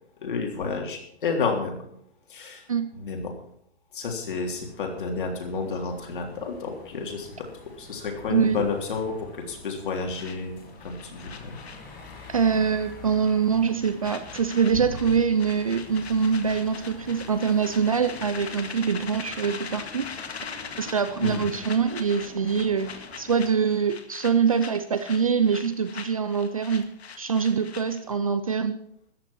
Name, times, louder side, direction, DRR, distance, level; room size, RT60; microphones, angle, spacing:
voice 1, 0.2-1.8 2.3-2.6 3.0-3.3 3.9-7.5 7.8-10.5 10.8-11.6 21.2-21.5, left 4 dB, 50° left, 2 dB, 3.5 m, -30 dB
sound 1, 4.4-23.5, left 3 dB, 15° left, 2.1 m, -47 dB
voice 2, 8.3-8.6 12.3-20.1 20.8-22.9 23.2-26.8 27.2-28.8, right 6 dB, 35° right, 11 dB, 0.5 m, -24 dB
sound 2, 10.2-12.4 12.7-12.9 13.2-28.1, left 6 dB, 75° left, 1.9 m, -41 dB
13.5 x 9.4 x 6.2 m, 0.67 s
hypercardioid pair, 175°, 32 cm